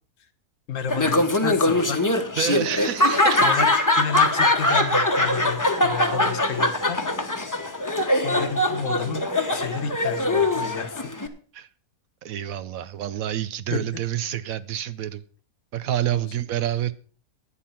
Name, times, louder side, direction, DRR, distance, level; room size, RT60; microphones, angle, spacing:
voice 1, 0.7-2.0 3.4-3.7 3.9-7.3 8.1-9.2 9.5-11.0 13.7-14.0 16.1-16.3, left 6 dB, 60° left, 1.5 m, -31 dB
Laughter, 0.9-11.3, left 1 dB, 15° left, 1.0 m, -22 dB
voice 2, 2.4-3.4 11.5-11.7 12.2-15.2 15.7-16.9, right 11 dB, 70° right, 1.1 m, -28 dB
11.5 x 9.2 x 5.8 m
omnidirectional pair, 1.6 m